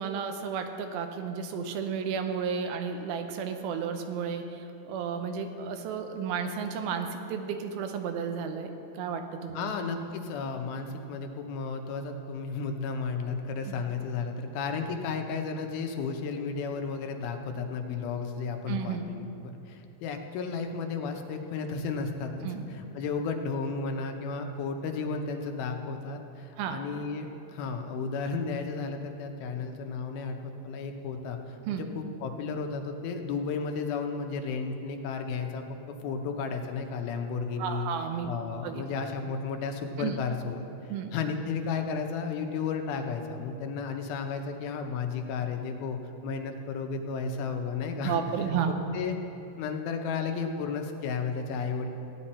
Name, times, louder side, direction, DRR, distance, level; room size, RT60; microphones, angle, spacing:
voice 1, 0.0-9.7 13.7-13.8 18.7-19.1 22.4-22.7 26.6-26.8 31.7-31.8 37.6-38.3 38.6-38.8 40.0-40.2 40.9-41.1 48.0-48.7, right 7 dB, 85° right, 6 dB, 2.7 m, -33 dB
voice 2, 9.5-35.6 36.0-37.9 38.3-40.6 41.1-48.2 48.5-48.6 48.9-49.2 49.6-51.9, left 5 dB, 85° left, 5 dB, 2.7 m, -33 dB
15.5 x 10.0 x 4.3 m, 2.9 s
omnidirectional pair, 4.2 m